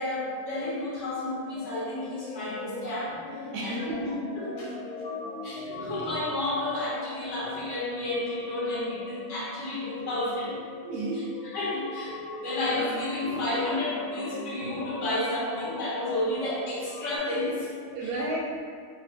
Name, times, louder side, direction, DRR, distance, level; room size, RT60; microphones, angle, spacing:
voice 1, 0.0-3.2 3.6-4.7 5.4-10.6 11.1-17.7 18.0-18.1, left 1 dB, 55° left, -6 dB, 1.2 m, -31 dB
sound 1, 1.5-17.2, left 2 dB, 90° left, 1.1 m, -40 dB
voice 2, 3.5-4.2 10.8-11.3 17.8-18.4, right 2 dB, 75° right, -3 dB, 1.1 m, -32 dB
3.1 x 2.6 x 4.1 m, 2.1 s
omnidirectional pair, 1.6 m